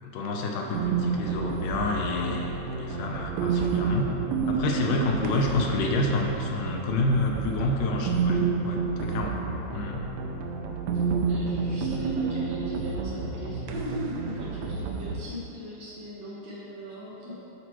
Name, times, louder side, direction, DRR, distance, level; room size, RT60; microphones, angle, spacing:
voice 1, 0.0-4.1 4.4-9.4 9.7-10.0, left 2 dB, 80° left, 1 dB, 2.2 m, -28 dB
sound 1, 0.7-15.2, right 5 dB, 85° right, 2.2 m, -30 dB
voice 2, 10.9-17.3, equal, 65° right, -6 dB, 2.1 m, -38 dB
12.5 x 4.5 x 3.0 m, 2.9 s
omnidirectional pair, 3.8 m